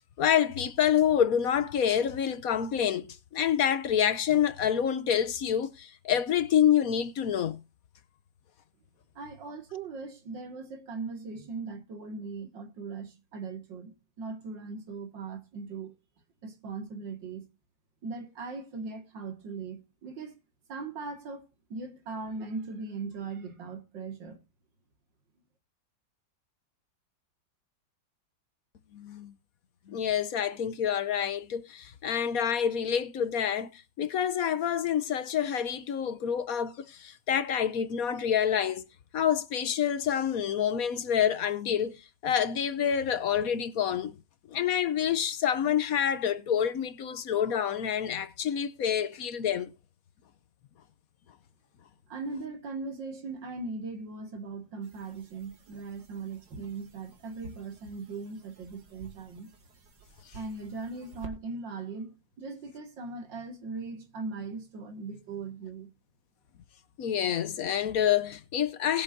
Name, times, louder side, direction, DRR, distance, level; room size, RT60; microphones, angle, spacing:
voice 1, 0.2-7.6 28.9-29.3 29.9-38.8 39.1-42.0 42.2-44.1 44.5-49.7 67.0-69.0, left 9 dB, 60° left, 1.1 m, -27 dB
voice 2, 9.2-16.0 16.4-17.5 18.0-20.4 20.7-21.4 21.7-24.4 52.1-59.5 60.3-65.9, right 4 dB, 90° right, 2.7 m, -39 dB
sound 1, 54.8-61.4, right 4 dB, 65° right, 2.5 m, -53 dB
20.0 x 7.3 x 2.7 m
omnidirectional pair, 1.9 m